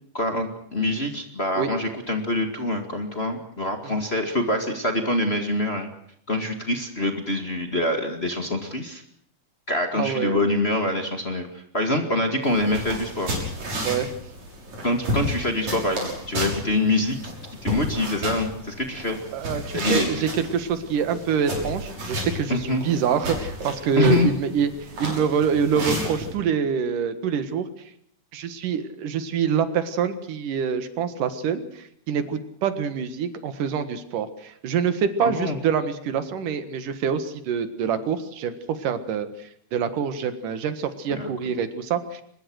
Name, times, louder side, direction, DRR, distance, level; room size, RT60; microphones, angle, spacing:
voice 1, 0.1-5.9 6.3-9.0 9.7-11.5 11.7-13.3 14.8-17.3 17.6-19.2 19.7-20.3 22.5-22.8 24.0-24.3 35.2-35.6 41.1-41.3, left 1 dB, 25° left, 4 dB, 1.9 m, -25 dB
voice 2, 9.9-10.4 13.8-14.1 19.3-24.7 25.0-27.7 28.3-42.2, right 7 dB, 85° right, 10 dB, 3.2 m, -26 dB
sound 1, 12.4-26.3, equal, 60° right, 7.7 m, -32 dB
23.5 x 21.5 x 6.4 m, 0.68 s
omnidirectional pair, 3.6 m